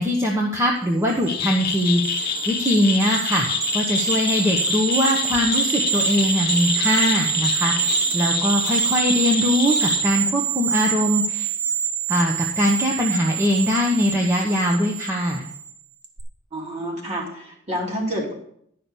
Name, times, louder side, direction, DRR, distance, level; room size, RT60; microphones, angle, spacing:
voice 1, 0.0-3.5 3.7-11.5 12.1-15.4, equal, 15° right, -1 dB, 1.0 m, -22 dB
sound 1, 1.1-15.7 16.0-16.2, right 9 dB, 60° right, 1.4 m, -26 dB
sound 2, 1.3-10.0, left 8 dB, 50° left, 1.0 m, -27 dB
voice 2, 16.5-18.3, equal, 35° right, -2 dB, 2.9 m, -28 dB
10.5 x 5.9 x 6.8 m, 0.69 s
head